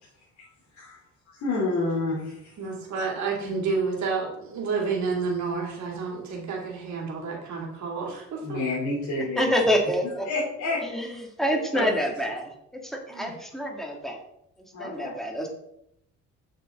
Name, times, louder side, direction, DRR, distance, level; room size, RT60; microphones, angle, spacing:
voice 1, 1.3-2.5 8.4-9.6 10.2-10.8 11.7-11.9 14.7-15.1, left 2 dB, 70° left, -6 dB, 3.0 m, -29 dB
voice 2, 2.6-8.6 13.1-13.3, right 4 dB, 70° right, -2 dB, 2.6 m, -30 dB
voice 3, 9.4-10.3 10.8-12.5 12.8-14.2 14.8-15.5, equal, ahead, 1 dB, 2.0 m, -27 dB
8.1 x 6.1 x 3.7 m, 0.80 s
cardioid pair, 90°, 30 cm